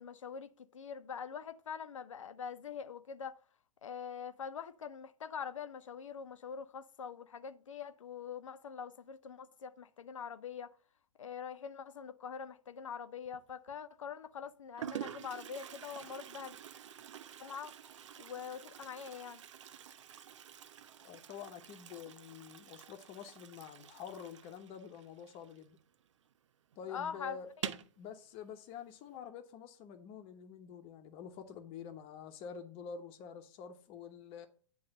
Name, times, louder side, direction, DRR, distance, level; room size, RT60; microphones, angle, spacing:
voice 1, 0.0-3.4 3.8-10.7 11.2-16.6 17.4-17.7 18.2-19.4 26.9-27.4, left 7 dB, 75° left, 0.7 m, -44 dB
Toilet flush, 13.3-13.7 14.4-14.5 14.8-26.1 26.3-26.4 26.7-26.8 27.5-28.0, right 10 dB, 65° right, 0.6 m, -48 dB
voice 2, 21.0-25.8 26.8-34.5, left 7 dB, 35° left, 1.1 m, -48 dB
9.7 x 3.2 x 6.6 m
figure-of-eight pair, 110°, 17 cm